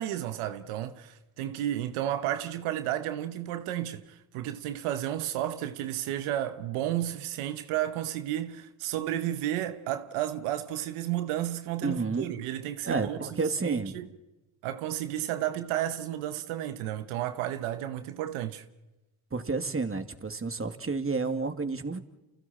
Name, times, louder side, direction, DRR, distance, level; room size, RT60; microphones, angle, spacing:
voice 1, 0.0-13.2 13.6-14.1 14.6-18.6, right 12 dB, 90° right, 1.2 m, -32 dB
voice 2, 11.8-12.3 12.8-14.0 19.3-22.0, right 4 dB, 25° right, 2.5 m, -30 dB
29.5 x 28.5 x 4.4 m
supercardioid pair, 55°, 49 cm